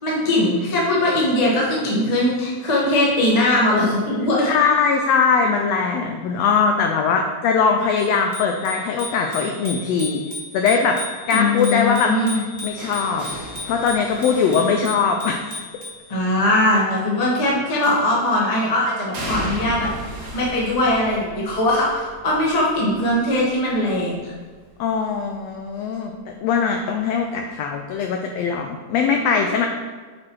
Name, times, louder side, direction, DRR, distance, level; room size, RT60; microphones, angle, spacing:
voice 1, 0.0-4.5 11.3-12.4 16.1-19.9 20.3-24.1, left 1 dB, 40° left, -5 dB, 0.5 m, -20 dB
voice 2, 4.5-10.2 10.5-13.2 13.7-15.6 24.8-26.1 26.4-29.7, left 5 dB, 85° left, 3 dB, 1.5 m, -21 dB
Bicycle bell, 8.0-16.1, left 3 dB, 25° left, 1.0 m, -35 dB
sound 1, 11.6-15.6 17.8-18.4 19.1-24.9 25.3-25.7 26.9-27.0, right 1 dB, 65° right, 0.8 m, -37 dB
6.3 x 4.4 x 4.5 m, 1.5 s
omnidirectional pair, 3.5 m